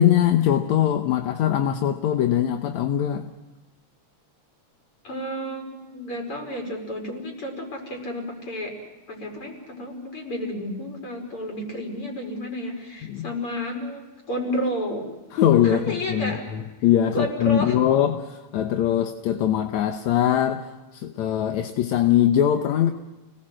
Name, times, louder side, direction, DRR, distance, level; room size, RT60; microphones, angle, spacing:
voice 1, 0.0-3.3 13.1-13.3 15.3-22.9, left 10 dB, 75° left, 2.3 m, -22 dB
voice 2, 5.0-8.7 9.1-15.1 15.6-16.5 17.1-17.8, equal, 45° left, 6.0 m, -31 dB
30.0 x 19.5 x 7.6 m
omnidirectional pair, 3.4 m